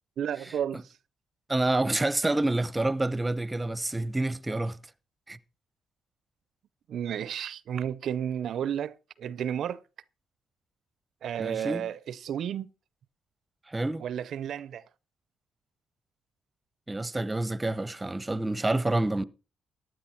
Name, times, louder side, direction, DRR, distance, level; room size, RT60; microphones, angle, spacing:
voice 1, 0.2-0.8 6.9-9.8 11.2-12.7 14.0-14.8, right 9 dB, 65° right, 0.6 m, -32 dB
voice 2, 1.5-4.8 5.3-5.4 11.4-11.9 13.7-14.0 16.9-19.2, right 2 dB, 15° right, 0.9 m, -28 dB
15.0 x 9.5 x 4.4 m
cardioid pair, 90°, 0 cm